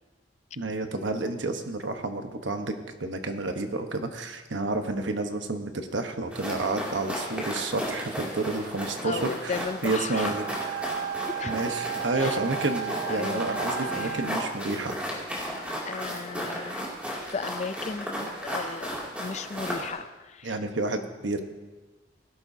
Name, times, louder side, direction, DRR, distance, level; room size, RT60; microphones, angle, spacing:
voice 1, 0.6-2.7 3.0-10.8 11.4-14.9 20.4-21.4, right 2 dB, 85° right, 6 dB, 1.1 m, -30 dB
sound 1, 6.3-19.9, equal, 5° right, 2.5 m, -34 dB
voice 2, 9.0-10.3 11.3-11.6 12.1-12.4 13.1-13.5 13.8-14.4 15.8-16.9 17.2-20.6, left 4 dB, 40° left, 12 dB, 0.5 m, -36 dB
Wind instrument woodwind instrument, 10.1-14.5, right 8 dB, 65° right, 3.3 m, -34 dB
17.5 x 11.5 x 2.7 m, 1.2 s
head